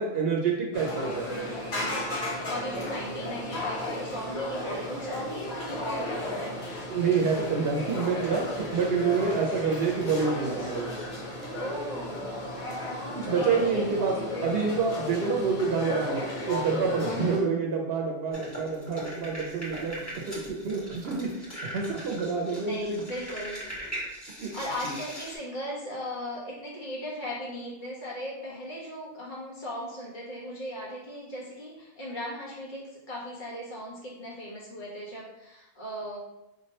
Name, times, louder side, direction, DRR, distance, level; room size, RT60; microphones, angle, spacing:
voice 1, 0.0-1.3 6.9-10.9 13.2-23.0 24.4-24.5 24.8-24.9, right 5 dB, 75° right, 0 dB, 0.8 m, -28 dB
sound 1, 0.7-17.4, left 1 dB, 85° left, 1.3 m, -34 dB
voice 2, 2.5-6.8 11.5-12.5 13.3-14.1 14.5-14.7 17.0-17.5 22.6-23.6 24.5-36.2, equal, 50° left, -5 dB, 1.4 m, -37 dB
sound 2, 18.3-25.4, equal, 15° left, 1.4 m, -40 dB
5.1 x 3.1 x 2.8 m, 0.92 s
omnidirectional pair, 1.0 m